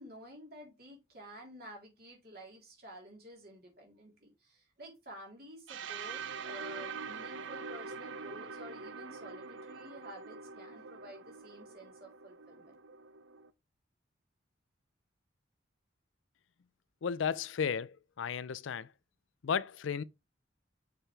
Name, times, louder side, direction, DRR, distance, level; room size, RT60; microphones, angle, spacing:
voice 1, 0.0-12.7, equal, 50° right, 3.5 m, -51 dB
sound 1, 5.7-13.5, right 5 dB, 75° right, 0.6 m, -44 dB
voice 2, 17.0-18.9 19.4-20.0, left 7 dB, 80° left, 0.4 m, -34 dB
6.7 x 5.8 x 3.3 m
head